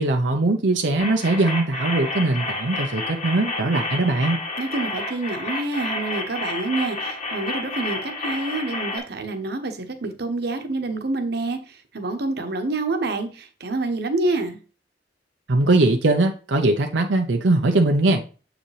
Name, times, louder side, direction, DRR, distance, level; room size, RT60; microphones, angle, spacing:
voice 1, 0.0-4.4 15.5-18.2, right 2 dB, 90° right, 0.8 m, -20 dB
sound 1, 1.0-9.0, left 2 dB, 40° left, 1.8 m, -30 dB
voice 2, 4.6-14.6, right 2 dB, 65° right, 1.1 m, -27 dB
7.5 x 5.0 x 3.3 m
head